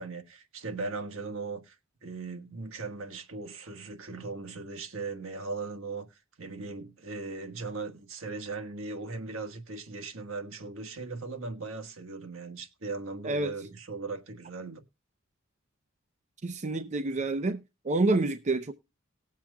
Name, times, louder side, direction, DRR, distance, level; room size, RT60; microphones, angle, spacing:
voice 1, 0.0-1.8 2.0-14.8, right 3 dB, 70° right, 1.4 m, -38 dB
voice 2, 16.4-17.6 17.8-18.7, right 2 dB, 35° right, 0.6 m, -28 dB
19.0 x 7.4 x 2.3 m
head